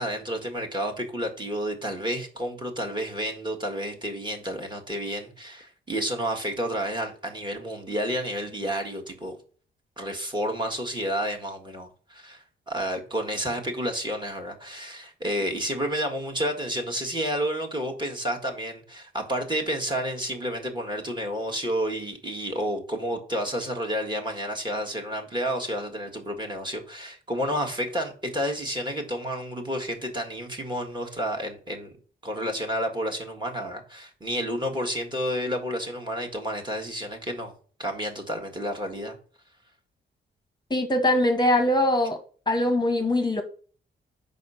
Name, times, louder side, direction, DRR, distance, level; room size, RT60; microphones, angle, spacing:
voice 1, 0.0-9.4 10.0-31.9 32.2-37.5 37.8-39.2, equal, 20° right, 1.6 m, -30 dB
voice 2, 40.7-42.2 42.5-43.4, left 1 dB, 20° left, 0.9 m, -22 dB
5.3 x 4.2 x 5.5 m
cardioid pair, 70°, 20 cm